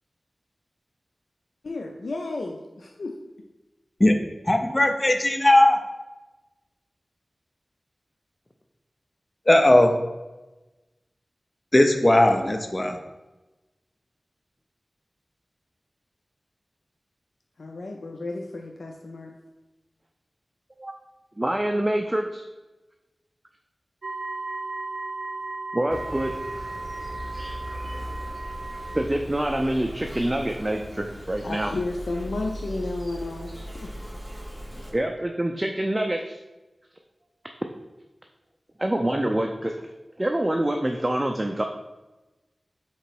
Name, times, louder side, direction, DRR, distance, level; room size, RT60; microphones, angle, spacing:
voice 1, 1.6-3.2 17.6-19.3 31.4-33.9, left 2 dB, 80° left, 2 dB, 0.4 m, -33 dB
voice 2, 4.5-5.8 9.5-10.0 11.7-13.0, left 1 dB, 30° left, 5 dB, 0.5 m, -18 dB
voice 3, 21.4-22.5 25.7-26.4 28.9-31.7 34.9-36.4 38.8-39.9 40.2-41.6, right 1 dB, 25° right, 3 dB, 0.4 m, -26 dB
sound 1, 24.0-29.0, right 3 dB, 85° right, 0.6 m, -35 dB
Insect, 25.9-34.9, equal, ahead, 1.0 m, -38 dB
3.8 x 3.0 x 4.6 m, 1.1 s
cardioid pair, 45°, 0 cm